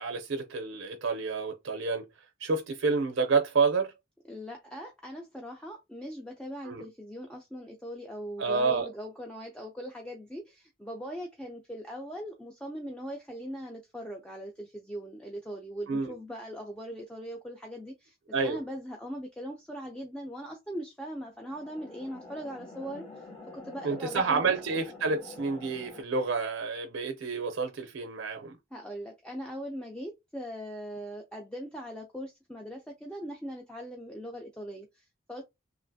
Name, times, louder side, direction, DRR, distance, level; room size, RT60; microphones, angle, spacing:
voice 1, 0.0-2.0 2.4-3.9 6.6-6.8 8.4-8.9 15.9-16.1 18.3-18.6 23.8-28.6, right 4 dB, 70° right, 0.5 m, -29 dB
voice 2, 4.3-18.2 18.4-23.3 23.5-24.5 28.7-35.4, equal, 5° left, 0.4 m, -40 dB
sound 1, 21.4-26.0, left 3 dB, 30° left, 1.2 m, -47 dB
3.1 x 2.4 x 2.6 m
head